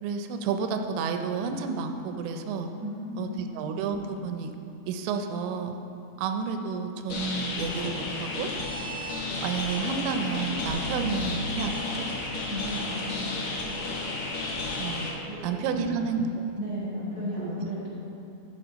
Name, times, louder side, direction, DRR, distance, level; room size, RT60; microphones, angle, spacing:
voice 1, 0.0-2.7 3.2-4.5 4.9-5.8 6.2-8.5 9.4-12.1 14.8-15.1 15.4-16.4 17.4-17.5, right 5 dB, 85° right, 6 dB, 2.9 m, -30 dB
voice 2, 2.8-3.4 12.5-13.4 15.2-16.1 16.5-17.9, equal, 25° left, -9 dB, 2.4 m, -35 dB
sound 1, 7.1-15.1, left 2 dB, 65° left, 1.8 m, -32 dB
sound 2, 10.7-12.9, left 2 dB, 85° left, 3.4 m, -40 dB
10.5 x 7.7 x 5.0 m, 2.7 s
omnidirectional pair, 5.1 m